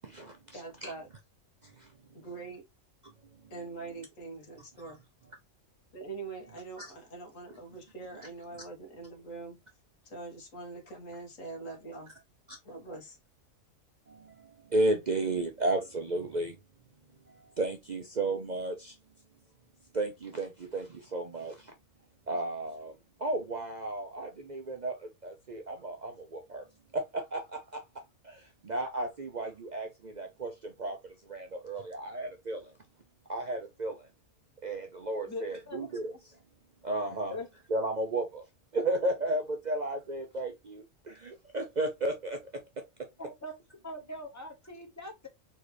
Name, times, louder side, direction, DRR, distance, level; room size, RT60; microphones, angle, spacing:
voice 1, 0.0-0.9 1.6-1.9 4.8-4.9 6.8-6.9 14.1-16.6 17.3-18.9 19.9-21.7 22.3-22.9 23.2-26.6 26.9-27.8 28.2-31.0 31.2-32.7 33.3-34.1 34.6-36.1 36.8-37.3 37.7-38.4 38.7-42.4, right 2 dB, 45° right, 0.7 m, -33 dB
voice 2, 0.5-1.1 2.1-2.7 3.5-5.0 5.9-9.6 10.0-12.1 12.6-13.2, right 3 dB, 75° left, 1.7 m, -43 dB
voice 3, 35.3-36.2 37.3-37.5 43.2-43.5 43.8-45.3, left 1 dB, 15° left, 1.1 m, -42 dB
4.4 x 3.1 x 3.1 m
omnidirectional pair, 1.4 m